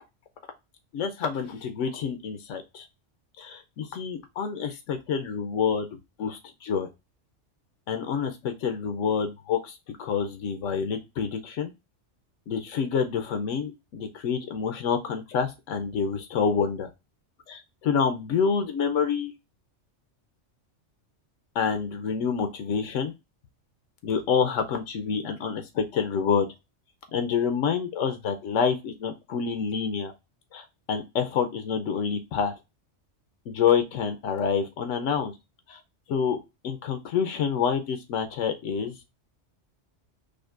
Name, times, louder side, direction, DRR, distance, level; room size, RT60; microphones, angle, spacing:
voice 1, 0.9-2.9 3.4-6.9 7.9-11.7 12.5-16.9 17.5-19.3 21.5-23.1 24.0-26.5 27.1-30.1 30.5-32.5 33.5-35.3 35.7-35.8 36.1-36.4 36.6-38.9, left 6 dB, 85° left, 7 dB, 1.0 m, -27 dB
5.0 x 2.2 x 2.4 m, 0.24 s
omnidirectional pair, 1.2 m